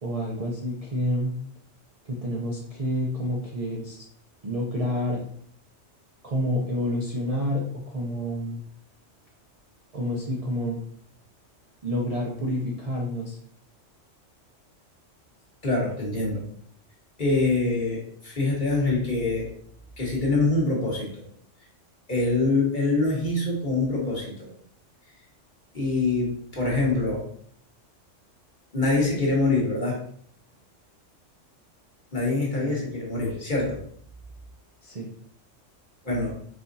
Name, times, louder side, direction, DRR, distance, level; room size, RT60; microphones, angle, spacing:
voice 1, 0.0-1.3 2.1-4.0 4.4-5.2 6.2-8.6 9.9-10.8 11.8-13.4 32.6-32.9 34.8-35.1, equal, 40° right, -3 dB, 0.6 m, -29 dB
voice 2, 15.6-16.4 17.2-19.5 20.0-21.2 22.1-24.5 25.7-27.2 28.7-30.0 32.1-33.8 36.0-36.3, left 2 dB, 40° left, -4 dB, 1.5 m, -25 dB
4.2 x 4.1 x 2.7 m, 0.63 s
omnidirectional pair, 1.3 m